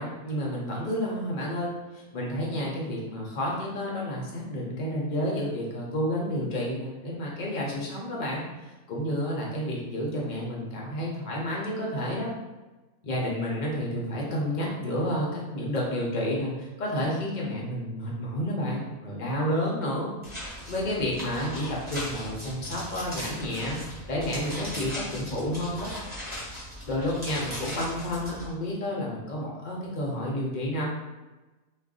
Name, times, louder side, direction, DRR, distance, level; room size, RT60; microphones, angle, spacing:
voice 1, 0.0-8.5 8.9-12.3 13.0-20.1 20.7-23.8 24.1-25.9 26.9-30.8, equal, 55° left, -3 dB, 0.5 m, -30 dB
sound 1, 20.2-28.5, equal, 10° right, 0.8 m, -38 dB
2.5 x 2.3 x 3.6 m, 1.2 s
omnidirectional pair, 1.6 m